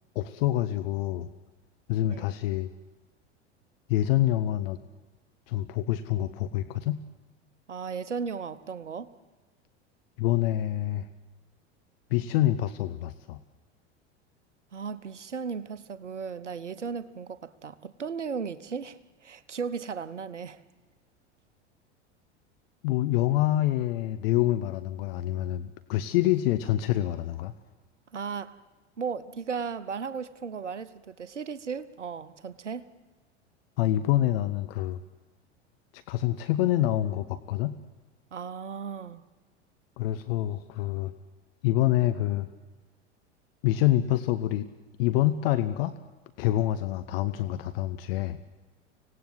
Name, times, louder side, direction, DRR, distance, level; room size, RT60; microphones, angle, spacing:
voice 1, 0.1-1.3 1.9-2.7 3.9-4.8 5.5-7.0 10.2-11.1 12.1-13.4 22.8-27.5 33.8-35.0 35.9-37.8 40.0-41.1 41.6-42.5 43.6-44.7 45.0-45.9 46.4-48.4, left 14 dB, 55° left, 1.0 m, -26 dB
voice 2, 7.7-9.1 14.7-20.6 28.1-28.6 29.0-32.9 38.3-39.2, right 6 dB, 80° right, 1.0 m, -36 dB
25.5 x 18.0 x 7.8 m
figure-of-eight pair, 80°, 35 cm